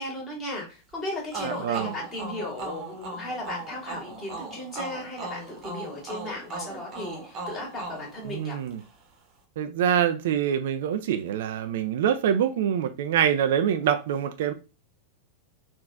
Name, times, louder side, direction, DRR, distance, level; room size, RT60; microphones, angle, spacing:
voice 1, 0.0-8.6, left 1 dB, 25° left, 2.0 m, -36 dB
sound 1, 1.3-8.9, right 3 dB, 35° right, 1.0 m, -38 dB
voice 2, 1.4-1.9 8.3-8.8 9.6-14.5, right 9 dB, 55° right, 0.4 m, -25 dB
3.8 x 2.5 x 3.3 m
figure-of-eight pair, 90°, 0 cm